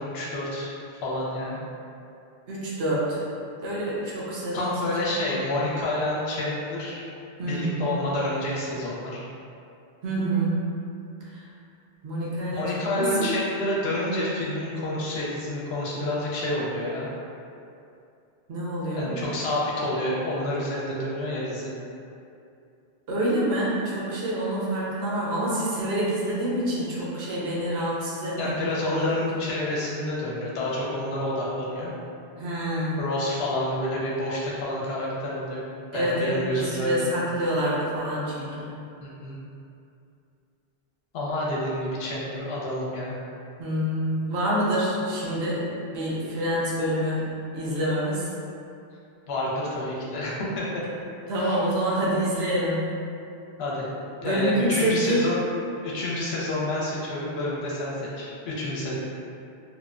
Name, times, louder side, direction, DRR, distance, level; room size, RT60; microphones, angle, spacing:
voice 1, 0.0-1.6 4.5-7.0 7.4-9.2 12.5-17.1 18.9-21.7 28.4-31.9 33.0-35.6 35.9-37.0 39.0-39.4 41.1-43.1 49.3-50.9 51.4-51.6 53.6-53.9 54.2-55.4 55.8-58.9, left 1 dB, 80° left, -5 dB, 0.8 m, -29 dB
voice 2, 2.5-3.2 3.6-4.7 5.1-5.2 7.4-7.8 10.0-10.6 11.3-11.4 12.0-13.3 18.5-19.2 23.1-28.5 28.9-29.2 32.4-33.0 35.9-38.7 43.6-45.7 45.9-47.2 47.5-48.3 51.3-52.9 54.2-55.2, right 1 dB, 75° right, -6 dB, 0.9 m, -27 dB
2.7 x 2.0 x 2.4 m, 2.6 s
omnidirectional pair, 1.1 m